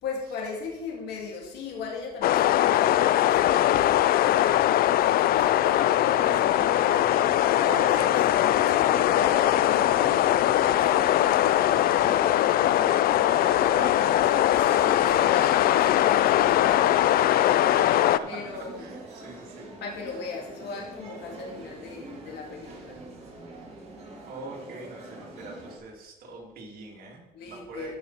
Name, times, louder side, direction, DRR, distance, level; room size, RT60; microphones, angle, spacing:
voice 1, 0.0-6.6 7.2-7.9 8.6-13.0 13.3-13.9 14.6-17.8 18.3-18.9 19.8-23.0 27.3-28.0, left 4 dB, 80° left, -1 dB, 2.6 m, -38 dB
sound 1, 2.2-18.2, left 13 dB, 60° left, 0.4 m, -21 dB
sound 2, 6.2-25.8, right 2 dB, 40° right, 2.9 m, -42 dB
voice 2, 7.6-8.1 8.4-8.8 13.7-14.1 17.4-19.7 24.3-28.0, right 3 dB, 60° right, -1 dB, 2.8 m, -42 dB
13.5 x 5.5 x 4.2 m, 1.0 s
cardioid pair, 110°, 17 cm